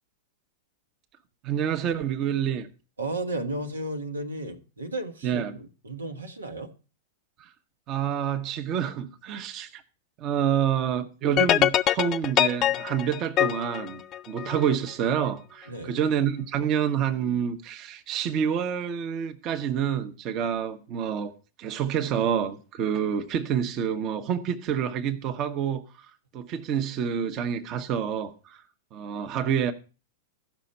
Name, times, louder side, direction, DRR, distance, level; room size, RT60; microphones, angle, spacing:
voice 1, 1.4-2.7 5.2-5.5 7.4-7.5 7.9-9.8 10.2-21.3 21.6-25.8 26.3-28.6 28.9-29.7, right 8 dB, 40° right, 1.1 m, -28 dB
voice 2, 3.0-6.7 15.7-16.1, right 2 dB, 90° right, 1.4 m, -34 dB
sound 1, 11.4-14.7, left 12 dB, 35° left, 0.4 m, -24 dB
14.0 x 5.9 x 5.4 m
hypercardioid pair, 105°, 0 cm